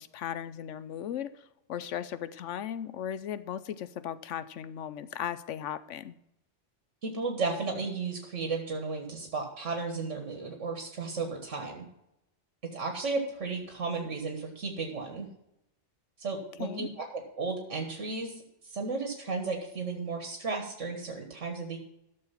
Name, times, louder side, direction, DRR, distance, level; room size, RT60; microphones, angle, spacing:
voice 1, 0.0-6.2 16.6-16.9, left 9 dB, 85° left, 14 dB, 1.0 m, -37 dB
voice 2, 7.0-11.9 12.7-15.3 16.2-21.8, right 4 dB, 80° right, 3 dB, 1.8 m, -34 dB
12.5 x 6.7 x 5.7 m, 0.83 s
omnidirectional pair, 1.2 m